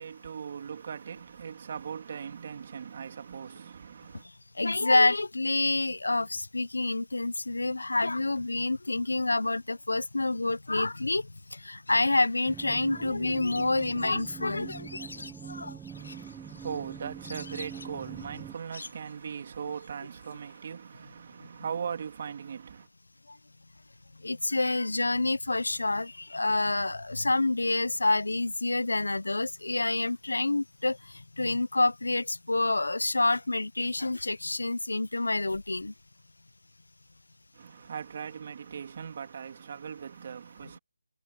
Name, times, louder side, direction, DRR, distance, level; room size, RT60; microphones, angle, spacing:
voice 1, 0.0-4.3 15.9-22.9 37.5-40.8, right 7 dB, 25° right, 2.9 m, -39 dB
voice 2, 4.6-11.2 11.5-14.9 15.5-15.8 24.2-31.0 31.4-35.9, left 2 dB, 85° left, 0.6 m, -27 dB
sound 1, 11.9-20.6, left 3 dB, 55° left, 3.6 m, -48 dB
sound 2, 12.5-18.5, right 8 dB, 5° right, 0.7 m, -44 dB
figure-of-eight pair, 175°, 0 cm